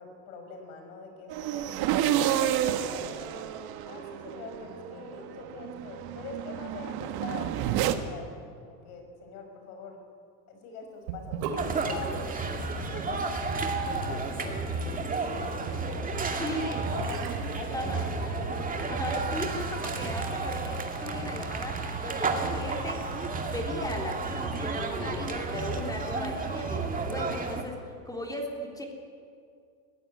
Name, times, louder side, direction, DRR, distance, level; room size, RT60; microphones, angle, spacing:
voice 1, 0.0-1.8 2.1-3.5 3.9-10.0 10.5-11.4 11.8-12.6 12.9-16.2 16.5-18.8, left 3 dB, 70° left, 5 dB, 5.8 m, -43 dB
sound 1, 1.3-7.9, right 11 dB, 55° right, 1.6 m, -30 dB
Sink (filling or washing) / Bathtub (filling or washing), 11.1-18.4, right 6 dB, 75° right, 3.5 m, -42 dB
sound 2, 11.6-27.6, right 3 dB, 20° right, 2.2 m, -32 dB
voice 2, 16.4-16.8 17.7-18.0 18.9-23.0 23.5-27.8 28.0-28.8, left 1 dB, 10° left, 1 dB, 3.4 m, -36 dB
20.5 x 15.5 x 9.6 m, 2.2 s
supercardioid pair, 135°, 45 cm